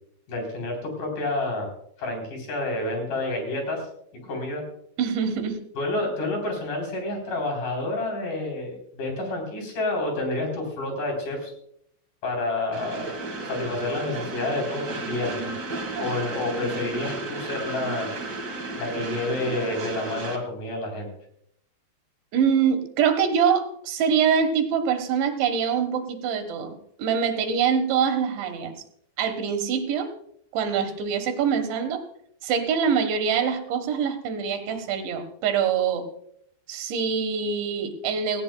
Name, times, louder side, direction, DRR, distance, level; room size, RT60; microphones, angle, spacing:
voice 1, 0.3-1.7 2.0-3.9 4.2-4.6 5.7-11.5 12.2-13.2 13.4-15.5 16.0-18.1 18.7-21.1, left 2 dB, 50° left, 2 dB, 5.0 m, -29 dB
voice 2, 5.0-5.6 22.3-26.7 27.0-28.7 29.2-30.1 30.5-32.0 32.4-36.0 36.7-38.4, right 7 dB, 90° right, 7 dB, 3.8 m, -24 dB
Train, 12.7-20.4, right 3 dB, 60° right, 1.1 m, -33 dB
18.0 x 16.5 x 2.3 m, 0.70 s
omnidirectional pair, 5.1 m